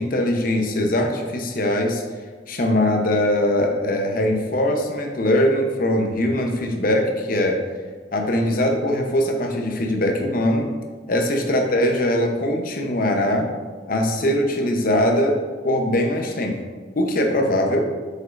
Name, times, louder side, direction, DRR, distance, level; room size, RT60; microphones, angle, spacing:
voice 1, 0.0-2.0 2.5-7.6 8.1-10.7 11.1-13.5 13.9-15.4 15.6-16.6 17.0-17.8, left 1 dB, 50° left, 3 dB, 0.7 m, -21 dB
7.7 x 5.4 x 2.5 m, 1.4 s
head